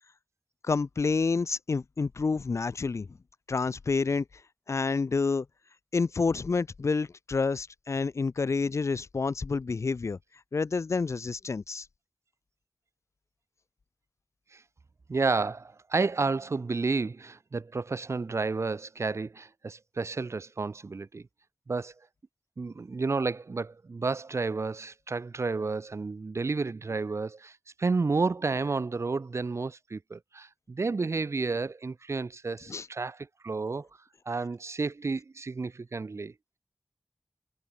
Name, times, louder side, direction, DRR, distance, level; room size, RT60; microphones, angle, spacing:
voice 1, 0.6-3.1 3.5-4.3 4.7-5.5 5.9-10.2 10.5-11.9 32.7-32.9, left 4 dB, 80° left, 1.7 m, -28 dB
voice 2, 15.1-21.2 21.7-21.9 22.6-33.9 34.3-36.3, right 4 dB, 70° right, 5.2 m, -31 dB
wide cardioid pair, 70°, 5 cm